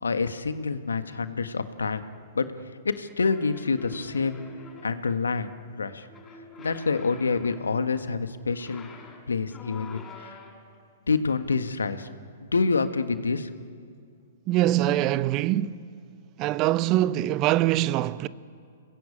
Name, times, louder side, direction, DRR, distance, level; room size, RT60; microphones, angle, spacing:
voice 1, 0.0-2.0 2.3-2.5 2.8-4.5 4.8-6.1 6.6-8.9 9.3-10.4 11.1-12.1 12.4-13.5, left 4 dB, 85° left, 1.5 m, -27 dB
sound 1, 3.3-5.1 6.1-7.9 8.5-10.8, left 3 dB, 20° left, 6.9 m, -46 dB
voice 2, 14.5-15.8 16.4-18.3, right 14 dB, 35° right, 0.7 m, -23 dB
29.0 x 20.5 x 8.7 m
hypercardioid pair, 120°, 0 cm